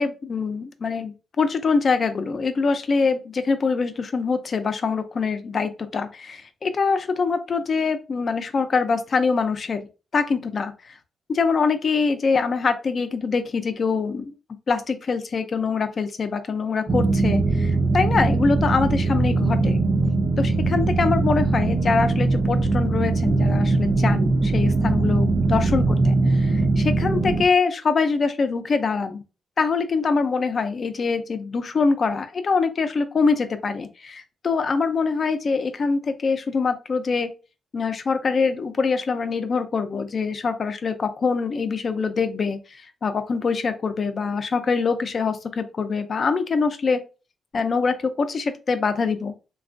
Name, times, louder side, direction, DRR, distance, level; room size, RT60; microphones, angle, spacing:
voice 1, 0.0-9.9 10.1-10.9 11.3-14.3 14.7-19.8 20.4-29.2 29.6-37.3 37.7-47.0 47.5-49.3, left 4 dB, 45° left, 9 dB, 0.4 m, -24 dB
sound 1, 16.9-27.4, right 3 dB, 40° right, 0.4 m, -21 dB
3.3 x 2.3 x 2.5 m, 0.31 s
cardioid pair, 100°, 0 cm